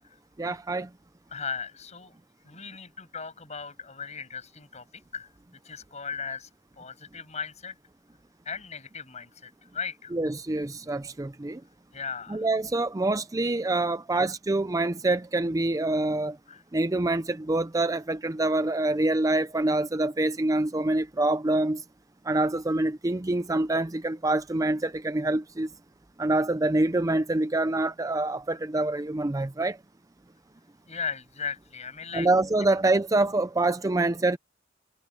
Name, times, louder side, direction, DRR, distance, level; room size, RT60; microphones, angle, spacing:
voice 1, 0.4-0.9 10.1-11.6 12.3-16.4 16.7-21.8 22.3-25.7 26.2-29.8 32.1-34.4, right 2 dB, 20° right, 0.5 m, -26 dB
voice 2, 1.3-2.1 2.4-4.8 5.1-5.3 5.6-6.5 6.8-7.8 8.5-10.1 11.9-12.5 16.5-16.6 30.9-32.3, left 6 dB, 40° left, 7.0 m, -37 dB
head